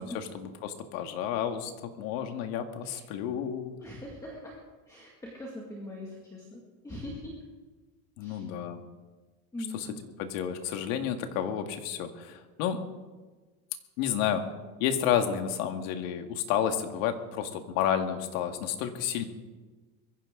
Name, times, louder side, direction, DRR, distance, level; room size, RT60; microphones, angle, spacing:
voice 1, 0.0-3.7 8.2-8.8 9.7-9.9 10.2-12.8 14.0-14.4 14.8-19.3, left 9 dB, 65° left, 6 dB, 2.0 m, -31 dB
voice 2, 3.8-4.5 4.9-7.4 8.2-8.4 9.5-9.8, left 1 dB, 10° left, -3 dB, 2.1 m, -41 dB
22.5 x 15.5 x 3.8 m, 1.3 s
cardioid pair, 175°, 43 cm